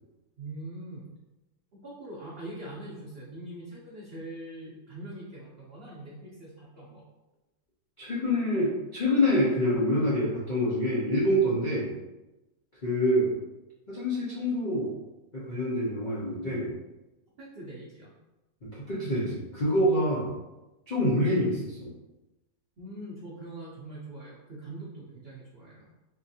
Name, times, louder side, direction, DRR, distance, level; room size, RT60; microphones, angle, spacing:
voice 1, 0.4-1.1 1.7-7.0 17.4-18.1 22.8-25.9, right 1 dB, 60° right, -7 dB, 0.6 m, -42 dB
voice 2, 8.0-11.9 12.8-13.4 13.9-14.9 15.3-16.7 18.6-20.3 20.9-21.9, equal, 85° left, -8 dB, 0.4 m, -26 dB
4.1 x 2.5 x 2.7 m, 1.0 s
omnidirectional pair, 2.0 m